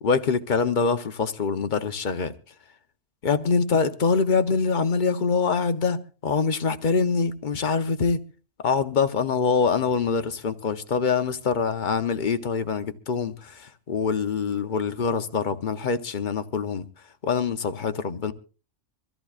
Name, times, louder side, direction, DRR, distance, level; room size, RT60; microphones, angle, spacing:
voice 1, 0.0-2.3 3.2-8.2 8.6-16.9 17.2-18.3, left 5 dB, 45° left, 0.8 m, -24 dB
24.5 x 14.0 x 2.4 m
omnidirectional pair, 1.3 m